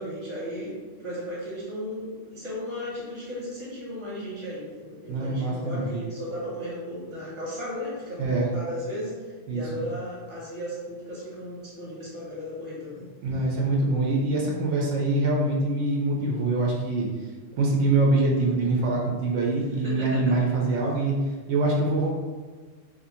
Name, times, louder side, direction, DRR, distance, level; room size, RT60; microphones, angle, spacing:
voice 1, 0.0-13.1 19.8-20.4, equal, 25° right, -7 dB, 0.9 m, -35 dB
voice 2, 5.1-5.9 8.2-8.5 9.5-9.6 13.2-17.1 17.5-21.1 21.5-22.1, right 2 dB, 80° right, -2 dB, 0.9 m, -24 dB
2.5 x 2.5 x 2.7 m, 1.4 s
omnidirectional pair, 1.3 m